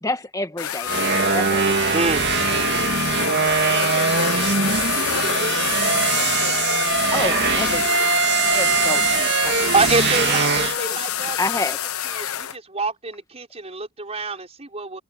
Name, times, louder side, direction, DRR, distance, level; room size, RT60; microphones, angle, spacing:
voice 1, 0.0-1.0 1.3-1.9 7.1-8.2 8.5-9.7 11.4-11.8, left 2 dB, 15° left, 1.5 m, -29 dB
sound 1, 0.6-12.5, left 9 dB, 70° left, 0.9 m, -26 dB
sound 2, 0.9-10.8, right 5 dB, 50° right, 2.1 m, -22 dB
voice 2, 1.9-2.3 9.7-11.6 12.1-15.0, right 3 dB, 30° right, 5.4 m, -26 dB
voice 3, 3.3-6.9 8.8-9.2 10.6-11.1, left 3 dB, 45° left, 6.2 m, -39 dB
head